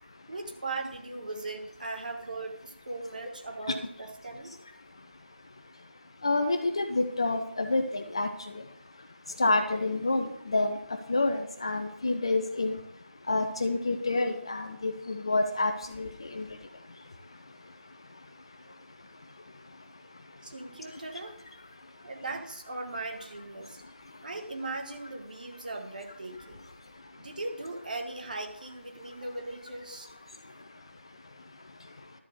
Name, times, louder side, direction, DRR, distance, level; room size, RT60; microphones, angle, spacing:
voice 1, 0.3-4.5 18.6-18.7 20.4-21.4 22.0-23.8 24.2-26.7 27.2-30.1, right 2 dB, 40° right, 4 dB, 1.6 m, -38 dB
voice 2, 6.2-8.3 9.4-10.8 11.1-12.8 13.3-15.7 16.0-16.1 16.3-16.4, left 2 dB, 25° left, 6 dB, 0.6 m, -28 dB
12.0 x 4.4 x 8.1 m, 0.72 s
figure-of-eight pair, 165°, 7 cm